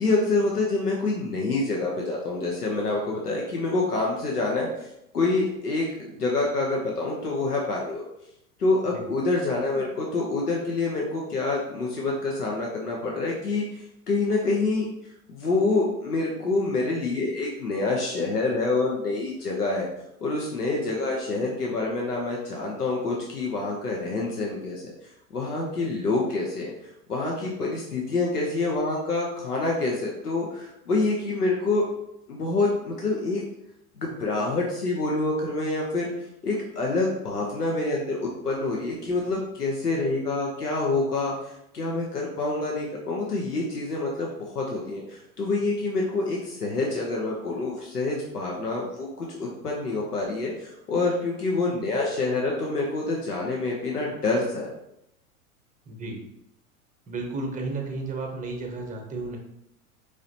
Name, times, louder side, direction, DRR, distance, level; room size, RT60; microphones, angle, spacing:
voice 1, 0.0-4.9 5.1-8.0 8.6-14.9 15.3-19.9 20.2-24.9 25.3-26.7 27.1-31.9 32.3-33.4 34.0-36.1 36.4-54.7, left 3 dB, 90° left, -2 dB, 0.8 m, -27 dB
voice 2, 55.9-56.2 57.1-59.4, right 3 dB, 15° right, 2 dB, 0.9 m, -33 dB
4.8 x 2.8 x 2.7 m, 0.81 s
figure-of-eight pair, 90°, 45 cm